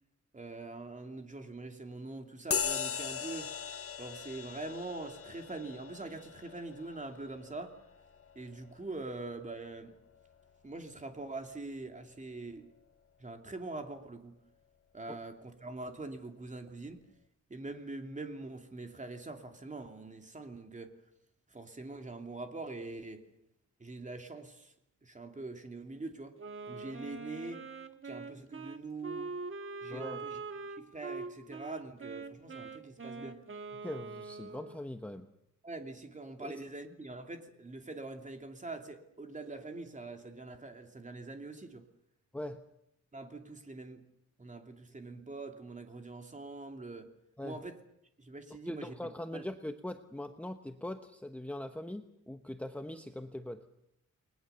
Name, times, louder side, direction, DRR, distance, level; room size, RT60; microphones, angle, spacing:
voice 1, 0.3-3.6 4.0-7.8 8.3-9.9 10.6-12.7 13.2-14.4 14.9-17.0 17.5-20.9 21.5-23.2 23.8-24.7 25.0-26.4 26.7-27.6 28.0-29.3 29.8-33.4 35.6-41.8 43.1-44.0 44.4-47.1 47.4-47.8 48.2-48.9 49.3-49.4, right 2 dB, 25° right, 5 dB, 2.8 m, -43 dB
sound 1, 2.5-10.4, left 6 dB, 45° left, 1.1 m, -40 dB
Wind instrument woodwind instrument, 26.4-34.8, right 4 dB, 40° right, 2.0 m, -43 dB
voice 2, 29.9-30.3 33.7-35.3 36.4-36.5 42.3-42.7 47.4-47.6 48.7-53.7, left 1 dB, 5° left, 6 dB, 1.1 m, -41 dB
29.5 x 21.0 x 6.9 m, 0.80 s
wide cardioid pair, 135°, 31 cm